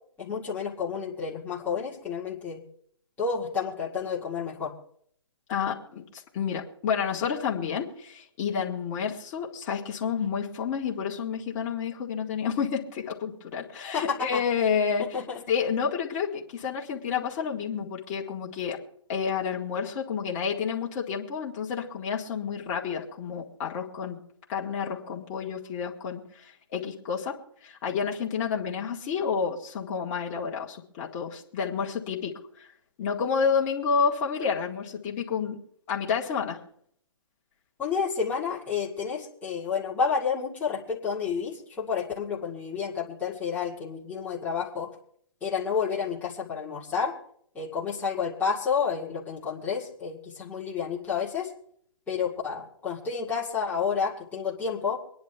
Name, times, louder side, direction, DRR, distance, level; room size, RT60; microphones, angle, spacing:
voice 1, 0.2-2.6 3.2-4.7 13.9-14.4 15.0-15.4 37.8-44.9 45.4-47.1 47.5-51.5 52.1-55.0, left 6 dB, 10° left, -5 dB, 2.0 m, -30 dB
voice 2, 5.5-15.1 15.5-18.8 19.1-24.2 24.5-32.7 33.0-35.6 35.9-36.6, left 6 dB, 30° left, -2 dB, 1.9 m, -30 dB
24.5 x 10.5 x 3.4 m, 0.64 s
hypercardioid pair, 150°, 16 cm